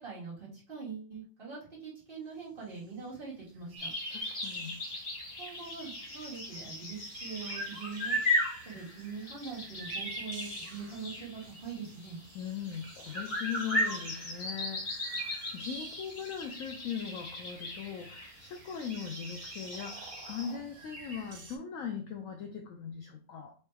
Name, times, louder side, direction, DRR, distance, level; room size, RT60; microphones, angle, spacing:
voice 1, 0.0-3.9 5.4-8.2 8.7-12.2, right 5 dB, 30° right, -8 dB, 2.3 m, -43 dB
sound 1, 2.8-2.9 3.0-3.1 3.3-21.6, right 4 dB, 55° right, 1.5 m, -48 dB
sound 2, 3.8-20.5, left 1 dB, 35° left, 1.5 m, -37 dB
voice 2, 4.1-4.8 12.3-23.5, left 7 dB, 80° left, 4 dB, 0.7 m, -40 dB
4.5 x 3.2 x 3.3 m, 0.41 s
omnidirectional pair, 2.0 m